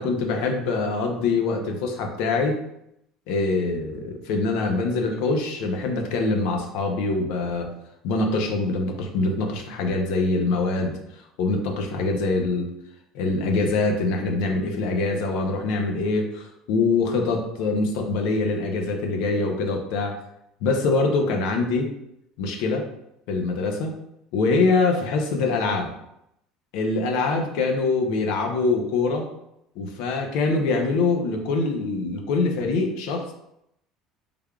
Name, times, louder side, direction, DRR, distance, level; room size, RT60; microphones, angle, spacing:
voice 1, 0.0-2.6 3.3-7.7 8.0-11.0 11.4-12.7 13.1-20.2 20.6-21.9 22.4-22.9 23.3-24.0 24.3-25.9 26.7-29.3 29.8-33.3, left 3 dB, 75° left, 3 dB, 0.6 m, -24 dB
3.5 x 3.4 x 2.3 m, 0.80 s
cardioid pair, 145°, 0 cm